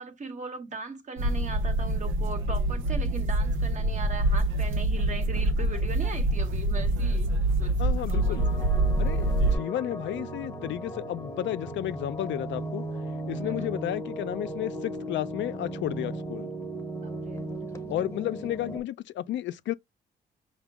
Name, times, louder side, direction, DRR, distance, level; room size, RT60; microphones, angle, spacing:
voice 1, 0.0-7.3 7.6-7.8 8.1-8.7 13.3-13.7 17.0-17.5, right 4 dB, 40° right, 1.0 m, -39 dB
sound 1, 1.2-9.6, right 1 dB, 85° right, 0.6 m, -26 dB
voice 2, 7.8-8.5 9.0-12.8 13.3-16.5 17.9-19.7, left 13 dB, 70° left, 0.4 m, -32 dB
sound 2, 8.1-18.8, right 1 dB, 15° left, 0.8 m, -36 dB
5.0 x 2.2 x 3.4 m
cardioid pair, 90°, 20 cm